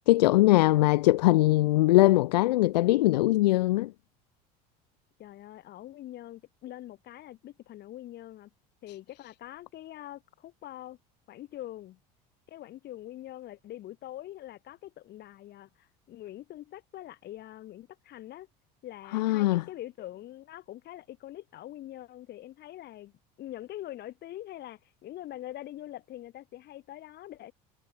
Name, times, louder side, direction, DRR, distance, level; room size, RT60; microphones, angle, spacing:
voice 1, 0.1-3.9 19.1-19.6, left 18 dB, 90° left, 0.5 m, -21 dB
voice 2, 5.2-8.5 8.8-11.0 11.3-12.0 12.5-18.5 18.8-23.1 23.4-27.5, left 14 dB, 55° left, 3.4 m, -44 dB
hypercardioid pair, 85°, 20 cm